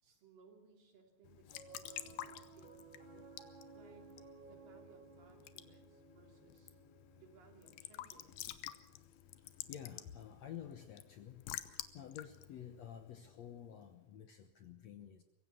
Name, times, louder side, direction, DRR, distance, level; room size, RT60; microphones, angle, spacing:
voice 1, 0.0-3.4 3.7-4.1 4.4-6.7 7.2-8.6, right 4 dB, 70° right, 3 dB, 4.8 m, -64 dB
Raindrop / Drip / Trickle dribble, 1.2-13.7, left 13 dB, 85° left, 2.8 m, -51 dB
Piano, 1.4-11.9, right 4 dB, 25° right, 1.1 m, -60 dB
voice 2, 9.4-15.2, left 9 dB, 65° left, 8 dB, 1.8 m, -51 dB
23.0 x 16.0 x 7.0 m, 0.95 s
omnidirectional pair, 4.2 m